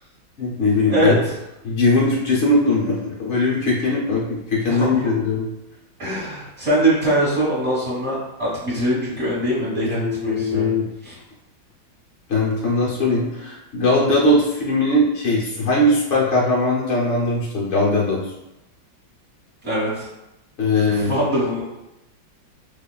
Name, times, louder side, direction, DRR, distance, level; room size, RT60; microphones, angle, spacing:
voice 1, 0.4-1.1 1.6-5.5 9.8-10.9 12.3-18.3 20.6-21.1, left 2 dB, 70° left, -5 dB, 0.6 m, -20 dB
voice 2, 0.9-1.3 4.7-5.1 6.0-10.7 11.0-11.1 19.6-20.1 20.9-21.6, right 1 dB, 40° right, -8 dB, 1.4 m, -22 dB
5.3 x 2.3 x 2.2 m, 0.91 s
omnidirectional pair, 2.1 m